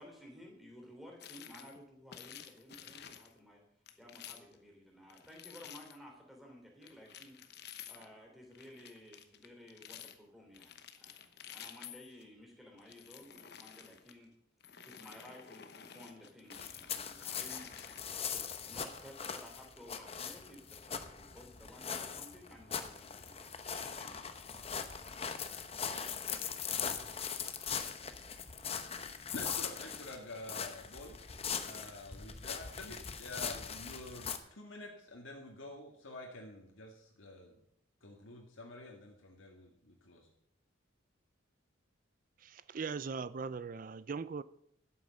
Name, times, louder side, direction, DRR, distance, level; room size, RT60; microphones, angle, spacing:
voice 1, 0.0-3.6 3.9-7.4 7.9-14.3 14.8-17.7 18.3-23.5 23.9-24.3, left 1 dB, ahead, 0 dB, 3.0 m, -55 dB
sound 1, 1.2-1.8 2.1-3.3 3.9-4.6 5.1-6.0 6.8-8.1 8.5-10.2 10.5-12.2 12.8-14.1 14.6-18.3, left 9 dB, 55° left, 1.0 m, -52 dB
sound 2, 16.5-34.4, left 7 dB, 30° left, 0.8 m, -41 dB
voice 2, 29.3-31.2 31.6-37.6 38.0-40.3, left 2 dB, 75° left, 0 dB, 2.0 m, -48 dB
voice 3, 42.4-44.4, right 5 dB, 40° right, 16 dB, 0.4 m, -40 dB
12.0 x 8.5 x 6.4 m, 0.72 s
head